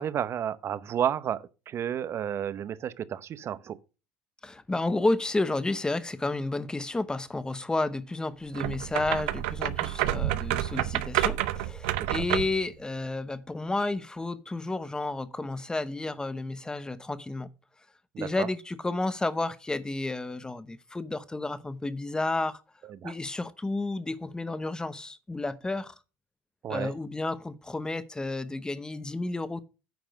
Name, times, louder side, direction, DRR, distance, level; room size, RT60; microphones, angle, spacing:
voice 1, 0.0-3.8 12.0-12.1 18.1-18.5 22.8-23.1 26.6-26.9, right 9 dB, 45° right, 0.8 m, -31 dB
voice 2, 4.4-17.5 18.2-22.6 23.0-25.9 26.7-29.6, left 2 dB, 10° left, 0.9 m, -31 dB
sound 1, 8.5-12.6, right 14 dB, 85° right, 0.7 m, -29 dB
9.2 x 4.8 x 6.3 m
supercardioid pair, 95°, 6 cm